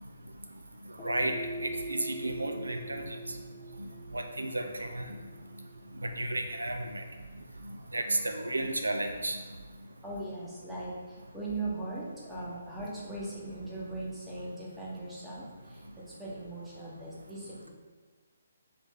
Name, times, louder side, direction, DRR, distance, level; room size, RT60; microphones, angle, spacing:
sound 1, 1.0-9.4, right 1 dB, 20° left, 0.4 m, -44 dB
voice 1, 1.0-3.0 3.8-3.9 4.1-5.2 6.0-7.0 7.7-9.4, right 1 dB, 80° right, 4 dB, 0.3 m, -33 dB
voice 2, 10.0-15.8 16.2-17.7, right 2 dB, 5° right, -8 dB, 0.9 m, -39 dB
3.1 x 3.1 x 3.5 m, 1.4 s
figure-of-eight pair, 140°, 0 cm